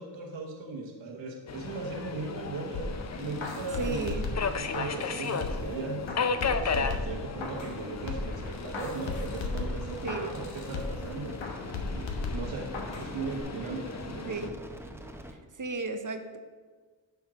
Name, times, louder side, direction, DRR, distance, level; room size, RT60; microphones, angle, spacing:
voice 1, 0.0-11.7 11.9-12.7 13.0-14.5, right 3 dB, 80° right, 1 dB, 1.2 m, -38 dB
Subway metro underground, 1.5-14.5, left 5 dB, 40° left, 0.6 m, -36 dB
sound 1, 2.7-5.7 6.1-7.8 8.1-11.1 11.4-13.1 13.4-13.5, left 3 dB, 85° left, 1.1 m, -36 dB
voice 2, 3.8-4.3 10.0-10.4 14.3-14.5 15.6-16.4, right 3 dB, 45° right, 7 dB, 0.9 m, -33 dB
sound 2, 5.7-15.3, right 1 dB, 5° right, 0.8 m, -46 dB
9.1 x 3.5 x 6.1 m, 1.5 s
cardioid pair, 50°, 45 cm